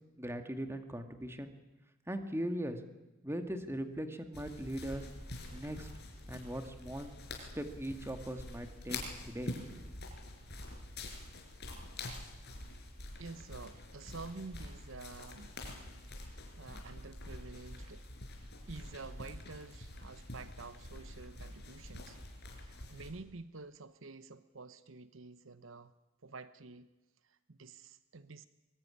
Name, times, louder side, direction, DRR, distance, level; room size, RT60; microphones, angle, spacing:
voice 1, 0.2-1.5 2.1-2.8 3.2-5.1 5.5-5.9 6.3-7.1 7.4-9.0 9.2-9.5, right 1 dB, 10° right, 7 dB, 2.1 m, -39 dB
sound 1, 4.3-23.1, left 2 dB, 55° left, 5.3 m, -46 dB
voice 2, 13.2-15.6 16.6-18.1 18.7-22.2 22.6-25.9 26.2-26.9 27.2-28.5, right 3 dB, 70° right, 13 dB, 0.9 m, -49 dB
23.5 x 21.0 x 9.9 m, 1.1 s
head